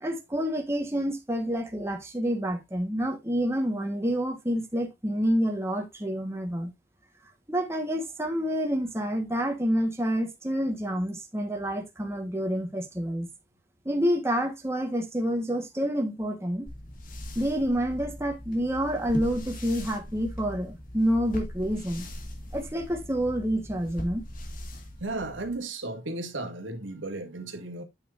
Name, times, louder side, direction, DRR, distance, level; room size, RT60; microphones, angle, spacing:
voice 1, 0.0-6.7 7.5-13.3 13.8-16.7 17.3-22.1 22.5-24.2, equal, 15° right, 1.5 m, -28 dB
sound 1, 16.7-25.6, left 1 dB, 45° left, 1.9 m, -40 dB
voice 2, 25.0-27.8, right 2 dB, 90° right, 2.0 m, -34 dB
8.8 x 6.6 x 2.6 m
head